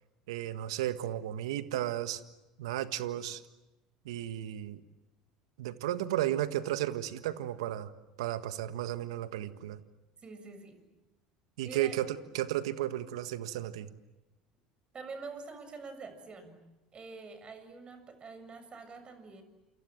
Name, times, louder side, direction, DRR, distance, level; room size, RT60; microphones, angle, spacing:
voice 1, 0.3-2.2 2.6-3.4 4.0-4.8 5.6-7.9 8.2-9.8 11.6-13.9, right 13 dB, 75° right, 11 dB, 1.6 m, -34 dB
voice 2, 10.2-10.8 11.6-12.0 14.9-16.6 16.9-19.4, right 4 dB, 35° right, 9 dB, 7.3 m, -46 dB
28.5 x 27.5 x 7.6 m, 1.0 s
hypercardioid pair, 75°, 3 cm